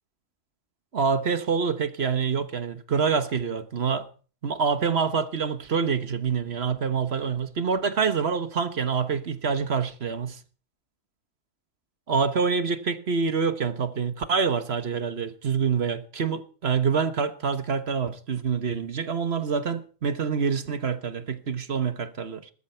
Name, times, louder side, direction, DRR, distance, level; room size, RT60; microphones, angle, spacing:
voice 1, 0.9-4.1 4.4-10.4 12.1-22.5, right 5 dB, 50° right, 1.3 m, -26 dB
20.0 x 13.0 x 4.5 m
omnidirectional pair, 1.4 m